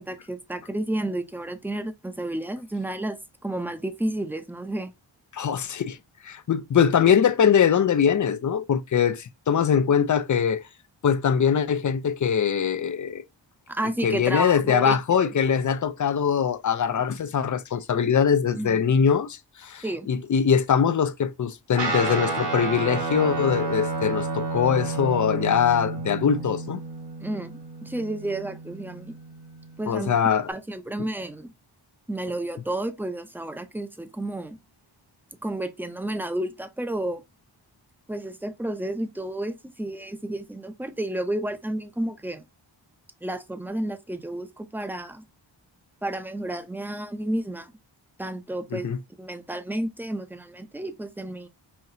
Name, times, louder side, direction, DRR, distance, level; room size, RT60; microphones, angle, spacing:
voice 1, 0.0-4.9 13.7-15.3 18.5-18.8 19.8-20.1 27.2-29.2 29.8-30.2 30.5-31.5 32.1-34.6 35.4-37.2 38.1-42.4 43.2-45.2 46.0-47.7 48.2-48.9 49.2-51.5, right 1 dB, 5° right, 0.6 m, -31 dB
voice 2, 5.3-6.0 6.2-10.6 11.0-13.2 14.0-26.8 29.9-30.5 48.7-49.0, left 7 dB, 40° left, 0.5 m, -22 dB
Guitar, 21.8-30.5, right 3 dB, 65° right, 2.2 m, -31 dB
5.6 x 2.9 x 2.7 m
wide cardioid pair, 105°, 46 cm